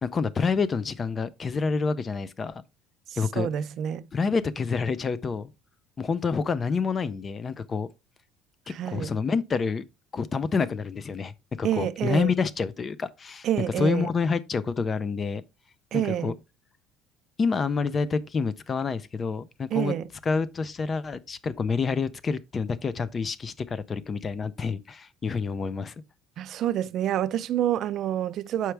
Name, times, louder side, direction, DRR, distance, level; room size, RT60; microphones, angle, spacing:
voice 1, 0.0-2.6 3.2-3.5 4.1-5.5 6.0-7.9 8.9-9.8 10.1-13.5 13.8-15.4 15.9-16.3 17.4-19.9 20.3-25.9, left 5 dB, 20° left, 0.4 m, -28 dB
voice 2, 3.4-4.0 8.7-9.1 11.6-12.3 13.4-14.1 15.9-16.3 19.7-20.0 26.4-28.7, right 11 dB, 45° right, 0.4 m, -27 dB
6.9 x 4.6 x 3.3 m
cardioid pair, 165°, 0 cm